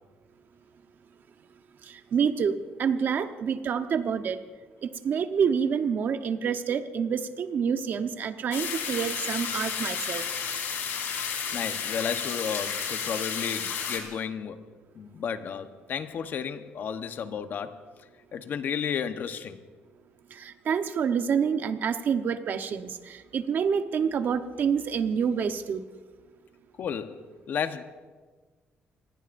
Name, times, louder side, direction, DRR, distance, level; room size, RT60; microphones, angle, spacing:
voice 1, 1.8-4.4 4.8-10.3 20.3-25.8, right 7 dB, 60° right, 8 dB, 1.1 m, -27 dB
sound 1, 8.5-14.0, left 7 dB, 80° left, 3.5 m, -32 dB
voice 2, 11.5-14.6 14.9-19.6 26.8-27.8, left 7 dB, 60° left, 8 dB, 1.1 m, -33 dB
27.0 x 20.0 x 2.7 m, 1.4 s
cardioid pair, 95°, 4 cm